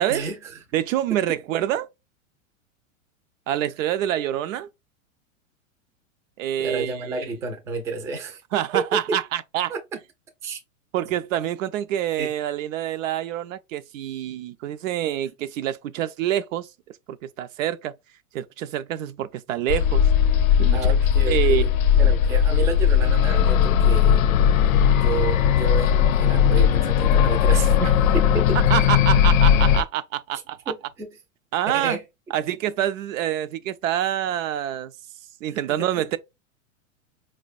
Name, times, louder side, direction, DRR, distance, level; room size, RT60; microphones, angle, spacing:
voice 1, 0.1-0.6 1.3-1.4 6.6-8.4 8.7-9.2 9.7-9.8 10.4-10.6 12.2-12.3 20.7-24.2 24.9-27.7 28.1-28.6 30.7-31.2 31.7-32.0 35.5-36.0, right 3 dB, 10° right, 0.4 m, -31 dB
voice 2, 0.7-1.9 3.5-4.7 6.4-7.3 8.5-9.7 10.9-16.7 17.1-18.0 18.3-20.1 20.6-20.8 21.3-21.6 27.8-27.9 28.7-30.6 31.5-32.0 32.3-34.9 35.4-36.2, right 11 dB, 70° right, 0.6 m, -26 dB
sound 1, 19.7-29.8, left 8 dB, 80° left, 0.5 m, -18 dB
4.5 x 2.2 x 2.4 m
hypercardioid pair, 125°, 40 cm